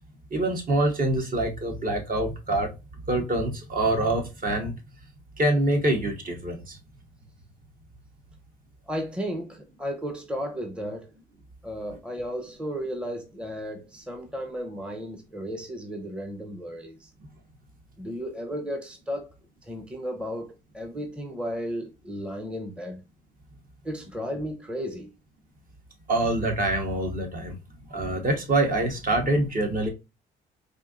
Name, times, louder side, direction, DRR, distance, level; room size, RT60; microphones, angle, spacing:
voice 1, 0.3-2.7 3.1-4.8 5.4-6.8 26.1-27.6 27.9-29.9, right 1 dB, 45° right, 1.1 m, -25 dB
voice 2, 8.9-11.1 11.6-17.1 18.0-19.3 19.6-23.0 23.8-25.1, equal, 5° right, 0.7 m, -34 dB
4.3 x 2.6 x 2.4 m
cardioid pair, 90°, 20 cm